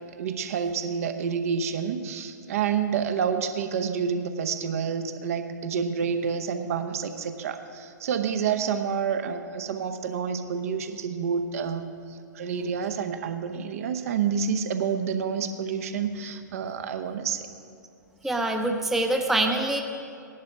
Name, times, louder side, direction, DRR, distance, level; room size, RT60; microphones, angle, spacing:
voice 1, 0.0-17.5, right 6 dB, 50° right, 8 dB, 0.9 m, -29 dB
voice 2, 18.2-19.8, right 2 dB, 5° right, 3 dB, 0.7 m, -25 dB
17.0 x 11.0 x 3.5 m, 2.5 s
figure-of-eight pair, 115°, 10 cm